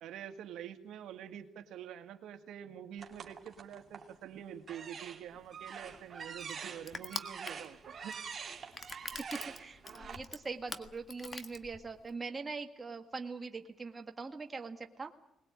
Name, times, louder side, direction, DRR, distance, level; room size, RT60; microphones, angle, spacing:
voice 1, 0.0-8.2, right 9 dB, 80° right, 7 dB, 1.9 m, -46 dB
sound 1, 3.0-4.1 4.6-10.1, right 6 dB, 45° right, 2.7 m, -45 dB
Crushing, 5.3-12.1, left 3 dB, 35° left, 1.6 m, -46 dB
voice 2, 9.2-15.1, right 4 dB, 25° right, 4 dB, 1.8 m, -42 dB
21.0 x 20.0 x 8.8 m, 0.82 s
cardioid pair, 90°, 0 cm